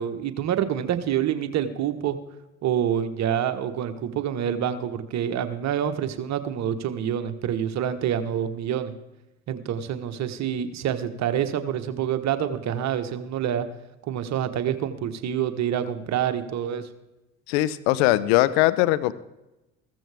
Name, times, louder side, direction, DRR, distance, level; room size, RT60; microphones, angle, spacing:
voice 1, 0.0-2.2 2.6-8.9 9.5-13.7 14.0-16.9, right 9 dB, 55° right, 10 dB, 1.3 m, -27 dB
voice 2, 17.5-19.1, left 16 dB, 80° left, 15 dB, 0.8 m, -20 dB
15.5 x 14.0 x 3.5 m, 0.96 s
hypercardioid pair, 65°, 32 cm